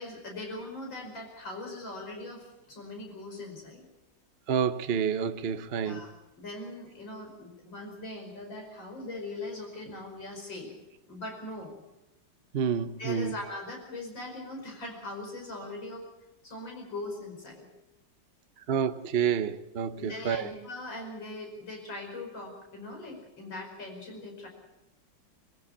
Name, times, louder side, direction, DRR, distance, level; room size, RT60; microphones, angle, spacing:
voice 1, 0.0-3.9 5.8-6.1 6.4-10.7 11.1-11.7 13.0-16.0 16.4-17.7 20.0-24.5, left 2 dB, 90° left, 6.0 m, -40 dB
voice 2, 4.5-6.1 12.5-13.4 18.7-20.5, right 7 dB, 50° right, 0.7 m, -29 dB
22.0 x 15.0 x 8.7 m
omnidirectional pair, 2.0 m